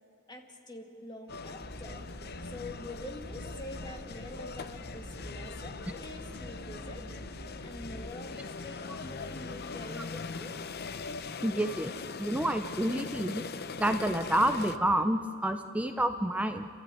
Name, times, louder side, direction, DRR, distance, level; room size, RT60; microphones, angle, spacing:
voice 1, 0.3-2.1 2.4-7.0 7.6-10.5, left 1 dB, 20° left, 2 dB, 2.1 m, -45 dB
sound 1, 1.3-14.8, left 4 dB, 50° left, 0.7 m, -41 dB
sound 2, 1.6-8.1, equal, 55° right, 2.7 m, -46 dB
voice 2, 11.4-11.9 12.2-13.5 13.8-16.7, right 1 dB, 5° right, 7 dB, 0.6 m, -29 dB
28.5 x 13.5 x 9.2 m, 2.5 s
head